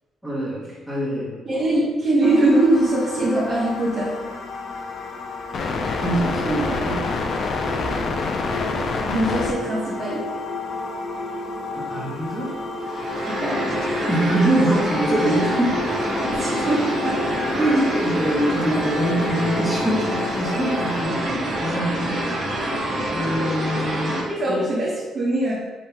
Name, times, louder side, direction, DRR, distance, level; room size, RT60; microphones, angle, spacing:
voice 1, 0.2-1.4 6.0-7.0 11.8-12.6 14.1-15.8 17.5-22.7 23.1-24.7, right 1 dB, ahead, -7 dB, 1.2 m, -24 dB
voice 2, 1.4-4.2 9.1-10.3 13.3-13.6 16.4-17.2 24.3-25.5, right 1 dB, 35° right, -8 dB, 1.0 m, -22 dB
sound 1, 2.2-21.0, left 3 dB, 45° left, 0.4 m, -29 dB
sound 2, 12.8-24.2, equal, 50° right, 1.3 m, -26 dB
5.3 x 2.8 x 2.8 m, 1.3 s
cardioid pair, 140°, 0 cm